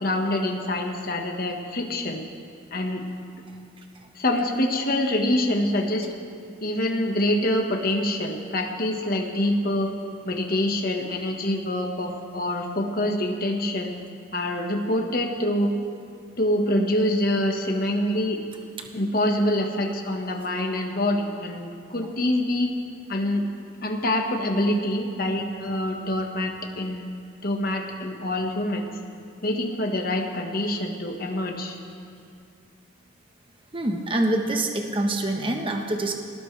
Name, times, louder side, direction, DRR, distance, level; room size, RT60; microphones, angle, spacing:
voice 1, 0.0-2.2 2.7-3.0 4.1-6.1 6.6-9.9 10.2-13.9 14.3-15.7 16.4-18.4 18.9-22.7 23.1-23.4 23.8-28.9 29.4-31.8, left 1 dB, 45° left, 2 dB, 1.6 m, -25 dB
voice 2, 33.7-36.1, right 1 dB, 25° right, 2 dB, 1.1 m, -25 dB
22.5 x 18.5 x 3.4 m, 2.4 s
head